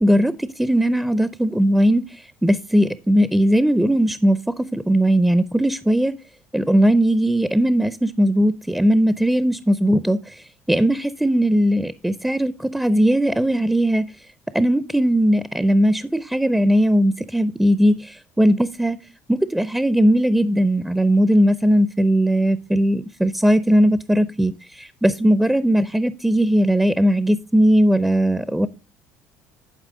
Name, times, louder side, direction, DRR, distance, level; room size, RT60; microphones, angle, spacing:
voice 1, 0.0-6.1 6.5-14.1 14.5-19.0 19.3-28.7, equal, 5° right, 0.6 m, -18 dB
11.0 x 4.6 x 3.8 m
supercardioid pair, 75°, 7 cm